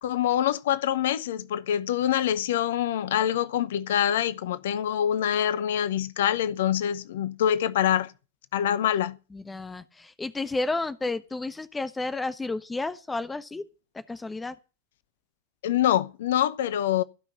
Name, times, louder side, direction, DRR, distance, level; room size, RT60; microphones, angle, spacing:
voice 1, 0.0-8.1 8.5-9.2 15.6-17.0, left 10 dB, 55° left, 0.9 m, -25 dB
voice 2, 9.3-13.6 14.1-14.5, left 2 dB, 10° left, 1.1 m, -31 dB
16.5 x 6.0 x 8.9 m
figure-of-eight pair, 90°, 0 cm